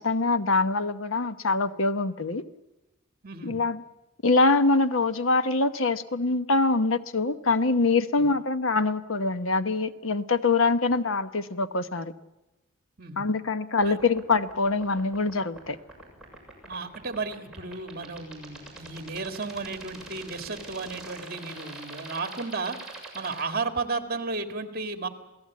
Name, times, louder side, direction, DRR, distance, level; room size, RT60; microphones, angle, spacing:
voice 1, 0.0-2.4 3.4-3.8 4.2-12.1 13.2-15.8, left 3 dB, 65° left, 11 dB, 1.0 m, -24 dB
voice 2, 3.2-3.6 13.0-13.3 13.8-14.0 16.7-25.1, right 3 dB, 45° right, 6 dB, 2.2 m, -33 dB
sound 1, 13.8-23.4, right 2 dB, 5° right, 7.1 m, -43 dB
27.5 x 17.5 x 8.5 m, 1.0 s
head